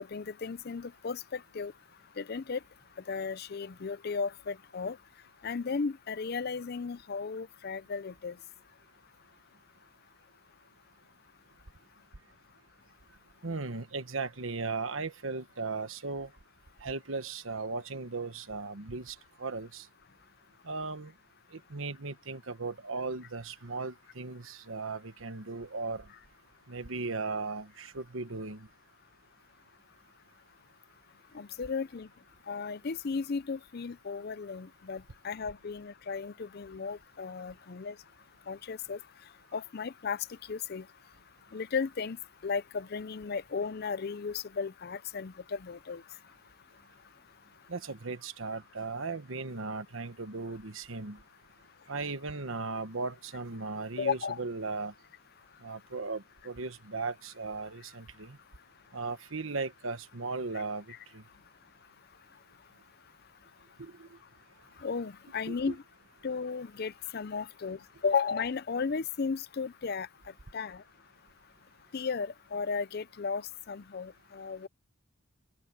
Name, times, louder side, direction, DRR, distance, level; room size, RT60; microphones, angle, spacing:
voice 1, 0.1-1.7 2.2-2.6 3.1-5.0 5.4-8.3 31.3-32.1 32.5-37.9 38.5-39.0 39.5-40.2 40.5-40.8 41.5-42.2 42.4-46.0 54.0-54.4 64.8-65.8 66.2-67.8 68.0-70.1 70.5-70.8 71.9-73.4 73.7-74.7, left 5 dB, 50° left, 0.5 m, -34 dB
voice 2, 13.4-16.3 16.8-19.9 20.7-21.1 21.5-26.0 26.7-28.7 47.7-51.2 51.9-54.9 55.6-58.4 58.9-60.8 61.1-61.2 63.8-64.1 65.5-65.7, right 3 dB, 75° right, 1.2 m, -37 dB
open air
head